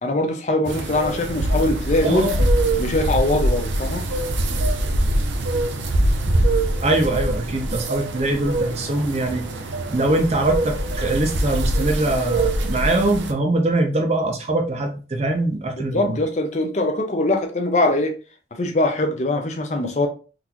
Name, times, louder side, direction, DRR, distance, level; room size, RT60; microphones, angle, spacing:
voice 1, 0.0-2.3 2.8-4.1 15.9-18.1 18.6-20.1, left 2 dB, 40° left, 0.5 m, -22 dB
sound 1, 0.7-13.3, right 1 dB, 90° right, 0.6 m, -23 dB
voice 2, 2.0-2.5 6.8-9.5 9.9-16.2, right 2 dB, 35° right, 0.6 m, -22 dB
3.8 x 2.5 x 2.8 m
head